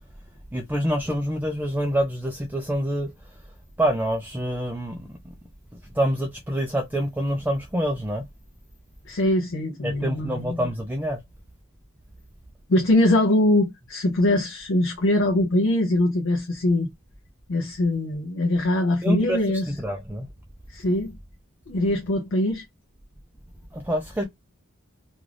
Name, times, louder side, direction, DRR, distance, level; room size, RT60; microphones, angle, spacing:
voice 1, 0.5-3.1 3.8-5.1 5.9-8.2 9.8-11.2 19.0-19.4 19.7-20.3 23.7-24.2, equal, 10° right, 0.4 m, -26 dB
voice 2, 9.1-10.7 12.7-16.9 17.5-19.7 20.7-21.1 21.7-22.6, left 1 dB, 60° left, 0.5 m, -22 dB
2.5 x 2.3 x 3.2 m
head